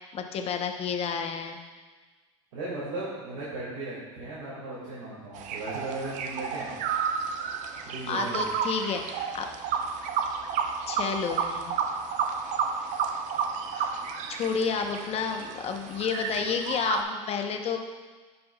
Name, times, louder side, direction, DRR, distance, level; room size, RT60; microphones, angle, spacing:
voice 1, 0.1-1.6 8.1-9.5 10.9-11.7 13.7-14.0 14.3-17.8, left 6 dB, 40° left, 5 dB, 0.8 m, -30 dB
voice 2, 2.5-6.7 7.9-8.5, right 2 dB, 85° right, -9 dB, 2.1 m, -37 dB
sound 1, 5.3-17.0, right 6 dB, 50° right, 0.6 m, -31 dB
11.0 x 5.3 x 2.3 m, 1.4 s
supercardioid pair, 95°, 16 cm